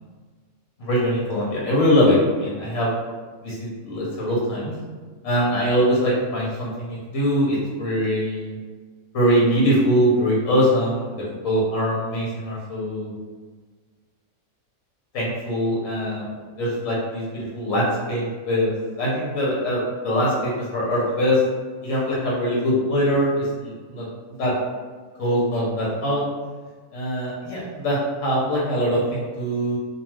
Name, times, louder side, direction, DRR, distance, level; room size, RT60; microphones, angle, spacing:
voice 1, 0.8-2.9 3.4-4.7 5.2-8.6 9.1-11.1 11.4-13.1 15.1-16.3 16.6-21.4 21.8-24.1 24.4-24.5 25.2-26.2 26.9-29.8, equal, 80° left, -5 dB, 1.1 m, -22 dB
2.4 x 2.3 x 3.1 m, 1.5 s
omnidirectional pair, 1.3 m